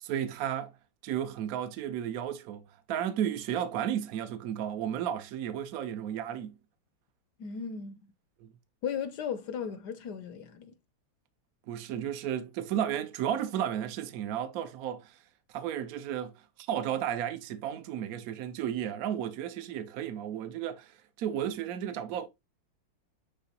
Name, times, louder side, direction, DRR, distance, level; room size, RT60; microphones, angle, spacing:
voice 1, 0.0-0.7 1.0-6.6 8.4-8.5 11.7-15.1 15.5-16.3 16.7-20.9 21.2-22.3, right 10 dB, 65° right, 0.9 m, -33 dB
voice 2, 7.4-8.0 8.8-10.7, left 7 dB, 65° left, 1.1 m, -36 dB
9.8 x 3.7 x 2.8 m
omnidirectional pair, 2.4 m